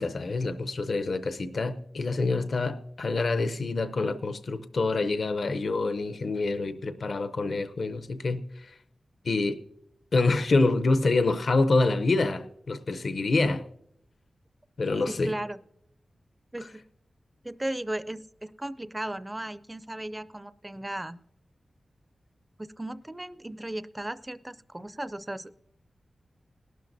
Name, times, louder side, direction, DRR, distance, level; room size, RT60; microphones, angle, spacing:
voice 1, 0.0-8.4 9.2-9.6 10.1-13.6 14.8-15.3, left 3 dB, 60° left, 0.6 m, -26 dB
voice 2, 15.1-15.6 16.5-16.8 17.4-21.2 22.6-25.5, right 1 dB, 15° right, 0.4 m, -36 dB
19.5 x 12.0 x 2.6 m
wide cardioid pair, 125°, 0 cm